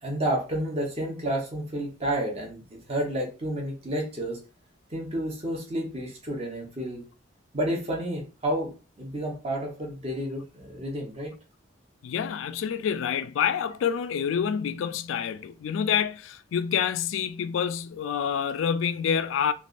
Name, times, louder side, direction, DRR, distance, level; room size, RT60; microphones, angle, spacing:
voice 1, 0.0-4.4 4.9-7.0 7.5-8.7 9.0-11.3, right 1 dB, 30° right, 0.9 m, -30 dB
voice 2, 12.0-19.5, left 7 dB, 80° left, 0.3 m, -27 dB
3.3 x 2.4 x 2.5 m
head